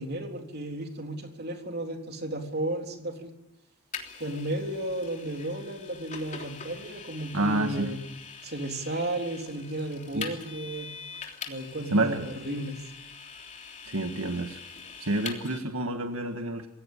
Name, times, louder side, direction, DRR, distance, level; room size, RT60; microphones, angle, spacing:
voice 1, 0.0-3.3 4.2-8.0 8.4-10.9 11.5-12.8, right 1 dB, 45° right, 4 dB, 3.6 m, -34 dB
Vehicle, 3.9-15.6, left 5 dB, 35° left, 3.4 m, -43 dB
voice 2, 7.3-7.9 10.1-10.4 11.9-12.2 13.9-14.6 15.0-16.7, right 2 dB, 75° right, 5 dB, 1.8 m, -28 dB
26.5 x 17.0 x 8.6 m, 0.92 s
head